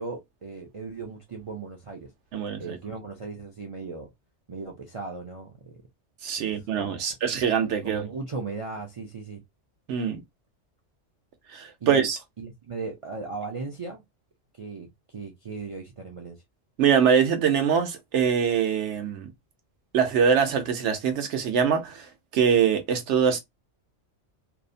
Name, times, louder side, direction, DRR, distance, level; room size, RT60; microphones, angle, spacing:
voice 1, 0.0-2.1 2.6-4.1 4.5-5.8 6.4-7.0 7.8-9.4 11.8-12.1 12.4-14.0 14.6-16.4, right 4 dB, 55° right, 0.3 m, -37 dB
voice 2, 2.3-2.8 6.2-8.0 9.9-10.2 11.5-12.2 16.8-19.3 19.9-23.4, right 7 dB, 75° right, 1.0 m, -23 dB
2.7 x 2.0 x 2.5 m
omnidirectional pair, 1.2 m